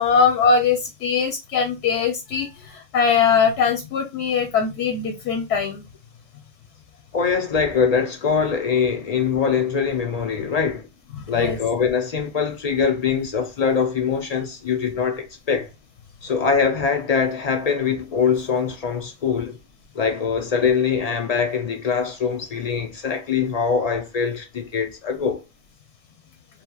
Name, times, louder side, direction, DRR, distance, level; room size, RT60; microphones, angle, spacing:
voice 1, 0.0-5.8 11.2-11.6, left 6 dB, 90° left, 0.9 m, -21 dB
voice 2, 7.1-10.9 11.3-15.7 16.2-19.6 19.9-25.4, left 6 dB, 55° left, 0.4 m, -23 dB
2.8 x 2.6 x 2.2 m
omnidirectional pair, 1.1 m